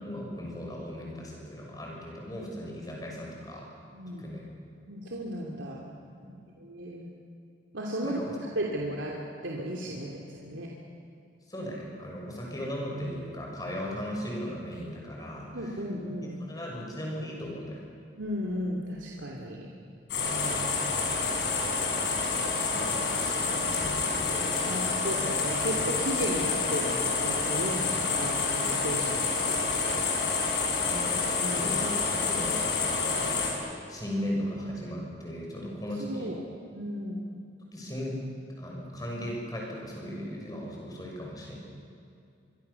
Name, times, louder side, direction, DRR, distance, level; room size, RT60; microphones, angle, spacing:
voice 1, 0.0-3.7 4.2-4.4 6.2-6.3 8.0-8.4 11.5-15.9 16.4-17.8 19.7-19.8 30.8-36.3 37.7-38.2 38.6-41.6, equal, 20° left, -2 dB, 6.4 m, -37 dB
voice 2, 3.9-4.2 4.9-5.8 6.6-7.1 7.7-8.2 8.6-9.2 9.4-10.7 15.5-16.4 18.2-19.7 20.3-21.1 22.2-23.4 24.6-30.0 31.4-31.6 36.0-36.4 36.7-37.4, right 1 dB, 85° right, -2 dB, 2.8 m, -35 dB
sound 1, 20.1-33.5, left 4 dB, 65° left, 6.0 m, -28 dB
24.5 x 24.5 x 7.0 m, 2.5 s
head